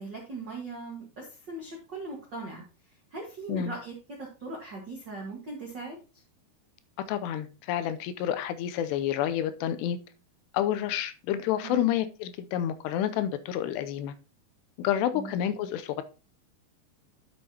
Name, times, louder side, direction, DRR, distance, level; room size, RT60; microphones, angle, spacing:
voice 1, 0.0-6.0 11.6-12.0 15.1-15.3, right 3 dB, 70° right, -1 dB, 1.0 m, -40 dB
voice 2, 7.1-10.0 10.5-14.1 14.8-16.0, left 10 dB, 90° left, 12 dB, 2.8 m, -29 dB
10.5 x 6.7 x 2.9 m, 0.34 s
omnidirectional pair, 4.7 m